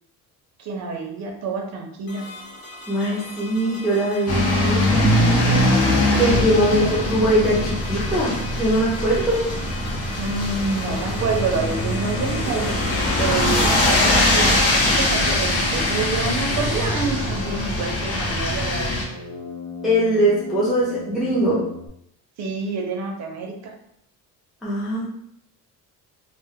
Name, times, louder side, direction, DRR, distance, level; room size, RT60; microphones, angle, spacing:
voice 1, 0.6-2.2 6.7-6.8 10.1-12.8 13.2-19.1 22.4-23.7, right 4 dB, 50° right, 2 dB, 0.5 m, -28 dB
sound 1, 2.1-16.9, left 1 dB, 85° left, 0.8 m, -38 dB
voice 2, 2.9-5.1 6.2-9.4 19.8-21.6 24.6-25.0, right 1 dB, ahead, -9 dB, 0.4 m, -21 dB
sound 2, 4.3-19.0, left 1 dB, 45° left, 0.6 m, -22 dB
sound 3, 10.6-21.9, left 2 dB, 15° left, 1.0 m, -34 dB
2.1 x 2.0 x 3.4 m, 0.73 s
cardioid pair, 165°, 35 cm